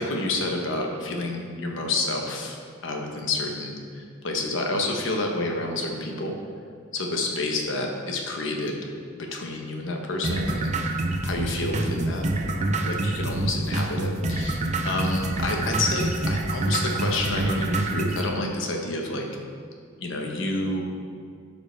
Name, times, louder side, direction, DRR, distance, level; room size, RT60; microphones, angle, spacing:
voice 1, 0.0-6.4 6.9-8.8 9.1-10.7 11.2-19.3 20.0-20.9, left 2 dB, 65° left, 1 dB, 1.1 m, -29 dB
sound 1, 10.2-18.2, right 2 dB, 35° right, 0.6 m, -26 dB
12.5 x 5.3 x 3.4 m, 2.1 s
head